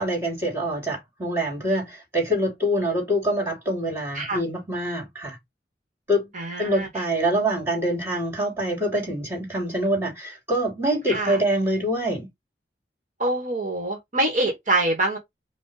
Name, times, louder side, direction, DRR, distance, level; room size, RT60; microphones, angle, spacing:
voice 1, 0.0-5.4 6.1-6.3 6.6-12.3, right 1 dB, 15° right, 3.3 m, -25 dB
voice 2, 6.3-7.0 11.1-11.4 13.2-15.2, right 2 dB, 45° right, 2.0 m, -25 dB
5.4 x 3.0 x 3.3 m
head